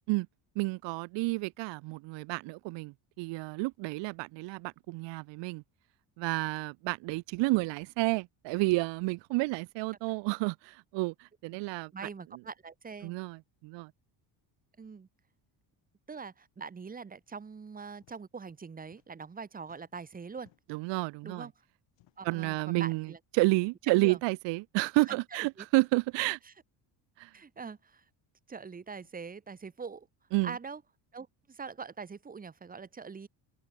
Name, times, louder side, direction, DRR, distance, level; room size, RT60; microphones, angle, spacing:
voice 1, 0.6-5.6 6.2-12.1 13.0-13.9 20.7-21.5 22.2-23.1 23.3-26.4 27.2-27.3 30.3-30.5, right 23 dB, 70° right, 0.6 m, -30 dB
voice 2, 11.7-13.2 14.8-15.1 16.1-20.5 21.2-21.5 22.2-23.2 23.9-24.2 25.1-25.7 26.4-26.5 27.3-28.0 28.5-30.1 30.4-30.8 31.1-33.3, right 5 dB, 20° right, 2.9 m, -43 dB
sound 1, 18.0-18.2 18.5-19.3 19.6-20.9 21.9-22.4 23.3-23.5 23.8-23.9 24.8-25.1 26.3-26.4 27.5-27.8 28.9-29.2, left 17 dB, 70° left, 6.7 m, -69 dB
open air
cardioid pair, 180°, 46 cm